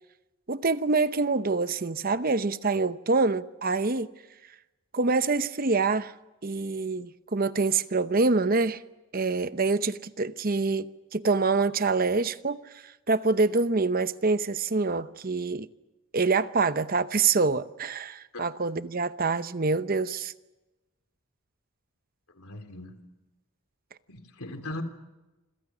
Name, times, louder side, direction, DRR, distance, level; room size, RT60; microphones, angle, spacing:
voice 1, 0.5-4.1 4.9-6.1 6.4-8.8 9.1-15.7 16.1-20.3, right 3 dB, 40° right, 0.8 m, -26 dB
voice 2, 22.3-22.9 24.1-24.8, left 1 dB, 85° left, 3.3 m, -39 dB
27.0 x 26.0 x 6.2 m
head